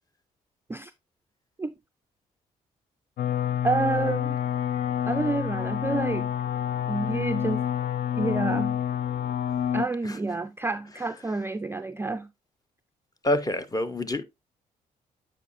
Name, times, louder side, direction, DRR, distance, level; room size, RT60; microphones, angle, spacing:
sound 1, 3.2-9.8, left 10 dB, 60° left, 0.5 m, -28 dB
voice 1, 3.6-4.4 5.1-6.3 6.9-7.7 8.2-8.8 9.7-12.3, right 3 dB, 15° right, 0.3 m, -29 dB
voice 2, 11.0-11.4 13.2-14.2, left 1 dB, 20° left, 0.8 m, -28 dB
8.0 x 4.6 x 2.5 m
hypercardioid pair, 45°, 19 cm